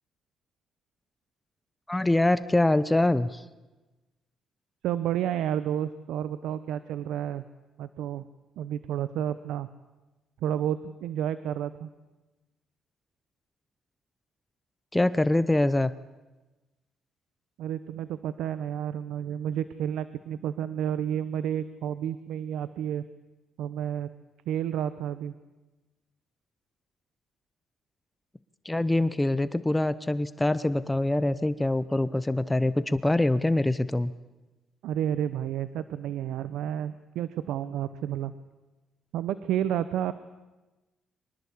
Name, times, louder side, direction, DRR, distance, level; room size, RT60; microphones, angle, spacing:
voice 1, 1.9-3.4 14.9-15.9 28.6-34.1, left 1 dB, 10° left, 15 dB, 0.8 m, -24 dB
voice 2, 4.8-7.4 7.8-8.2 8.6-9.7 10.4-11.9 17.6-23.0 23.6-24.1 24.5-25.3 34.8-38.3 39.1-40.1, right 10 dB, 85° right, 14 dB, 0.9 m, -30 dB
24.0 x 19.5 x 8.5 m, 1.1 s
cardioid pair, 95°, 0 cm